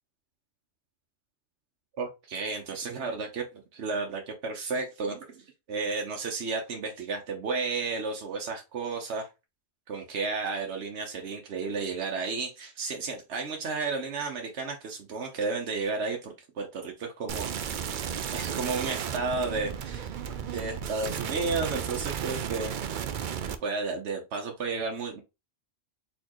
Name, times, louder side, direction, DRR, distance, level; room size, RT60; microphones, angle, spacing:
voice 1, 2.0-3.5 3.7-9.3 9.9-17.9 18.3-22.7 23.6-25.2, right 4 dB, 80° right, 1 dB, 1.1 m, -33 dB
sound 1, 17.3-23.5, right 8 dB, 55° right, 0.6 m, -34 dB
4.3 x 3.9 x 2.9 m, 0.26 s
omnidirectional pair, 1.1 m